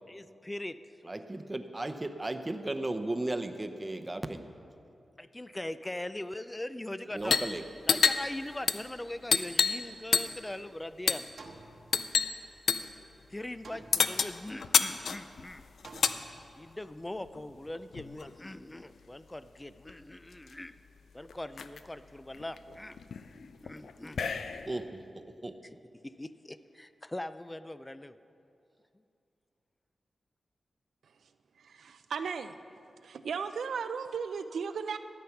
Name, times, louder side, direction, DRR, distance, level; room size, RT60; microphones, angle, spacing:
voice 1, 0.1-0.8 5.2-7.4 7.9-11.2 13.3-15.6 16.6-20.7 21.1-23.0 23.6-24.2 26.0-28.2, left 1 dB, 20° left, 13 dB, 0.4 m, -41 dB
voice 2, 1.0-4.4 7.1-7.6 24.7-25.5, right 2 dB, 25° right, 8 dB, 0.8 m, -35 dB
sound 1, 7.2-7.5 7.8-9.9 10.1-10.5 11.1-11.3 11.9-12.4 12.7-12.9 13.9-16.2 17.3-18.3 19.6-19.7 19.9-20.5 21.0-21.1 21.3-21.8 22.3-24.8, left 6 dB, 85° left, 0.4 m, -29 dB
sound 2, 9.8-10.7 11.4-12.6 13.6-14.6 15.8-16.8, right 3 dB, 70° right, 1.1 m, -52 dB
voice 3, 31.6-32.5 33.0-35.0, right 6 dB, 90° right, 10 dB, 0.5 m, -36 dB
13.0 x 8.6 x 5.9 m, 2.6 s
cardioid pair, 70°, 0 cm